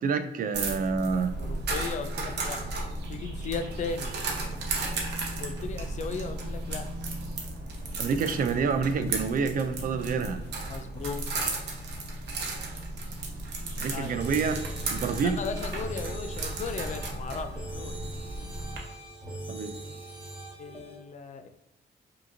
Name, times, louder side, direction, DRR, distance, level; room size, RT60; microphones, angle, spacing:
voice 1, 0.0-1.3 8.0-10.4 13.8-14.6 14.9-15.4 19.5-19.7, right 5 dB, 55° right, 8 dB, 0.4 m, -28 dB
sound 1, 0.5-18.8, right 2 dB, 75° right, 0.9 m, -34 dB
voice 2, 1.4-2.6 3.1-4.1 5.4-6.8 10.7-11.2 13.9-14.2 15.2-17.9 20.6-21.5, left 5 dB, 45° left, 8 dB, 0.4 m, -36 dB
sound 2, 14.1-21.0, right 1 dB, 5° right, 1.3 m, -41 dB
5.0 x 2.9 x 2.6 m, 0.90 s
cardioid pair, 140°, 17 cm